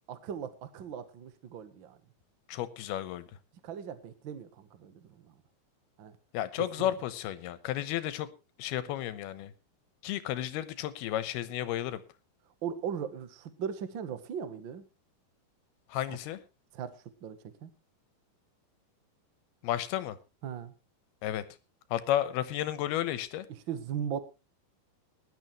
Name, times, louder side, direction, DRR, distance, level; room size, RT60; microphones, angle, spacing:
voice 1, 0.1-2.0 3.6-5.3 6.0-6.1 6.8-6.9 12.6-14.8 16.1-16.2 16.7-16.9 17.2-17.7 20.4-20.7 23.5-24.2, right 8 dB, 85° right, 11 dB, 1.0 m, -38 dB
voice 2, 2.5-3.3 6.3-8.3 8.6-9.5 10.0-12.0 15.9-16.4 19.6-20.2 21.2-21.4 21.9-23.5, left 12 dB, 85° left, 14 dB, 3.0 m, -32 dB
19.5 x 11.5 x 3.1 m, 0.28 s
omnidirectional pair, 4.4 m